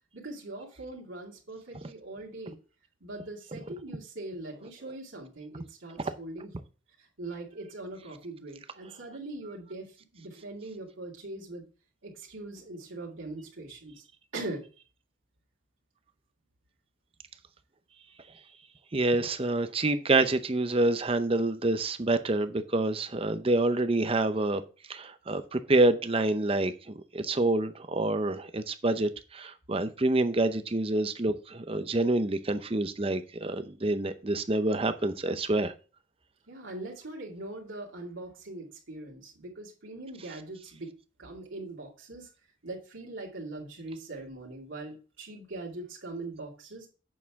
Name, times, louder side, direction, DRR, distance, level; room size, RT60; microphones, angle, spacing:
voice 1, 0.1-2.6 3.0-6.5 7.0-11.6 12.0-14.0 14.3-14.6 36.5-40.9 41.2-42.3 42.6-46.9, right 2 dB, 70° right, 2.3 m, -41 dB
voice 2, 18.9-24.6 24.9-35.7, right 2 dB, 25° right, 0.6 m, -27 dB
8.5 x 6.6 x 3.6 m
head